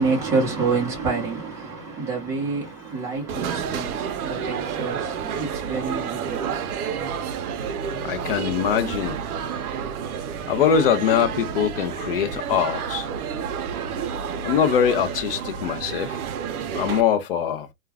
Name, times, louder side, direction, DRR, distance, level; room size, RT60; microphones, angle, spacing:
voice 1, 0.0-6.8, right 4 dB, 5° right, 0.7 m, -27 dB
sound 1, 3.3-17.0, right 7 dB, 70° right, 0.7 m, -30 dB
voice 2, 8.0-9.2 10.5-13.1 14.4-16.2 16.7-17.7, left 8 dB, 40° left, 0.4 m, -22 dB
2.3 x 2.2 x 3.3 m
hypercardioid pair, 155°, 45 cm